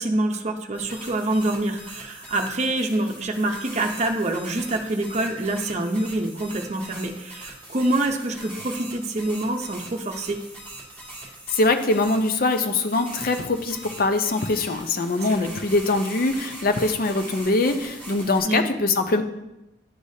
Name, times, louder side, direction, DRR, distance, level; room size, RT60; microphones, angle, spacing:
voice 1, 0.0-10.4 15.3-15.5 18.4-18.6, right 2 dB, 40° right, 3 dB, 0.7 m, -26 dB
sound 1, 0.7-18.4, right 1 dB, 15° left, 2.4 m, -41 dB
voice 2, 11.5-19.3, left 2 dB, 55° left, 7 dB, 0.6 m, -23 dB
11.0 x 4.8 x 2.8 m, 0.92 s
head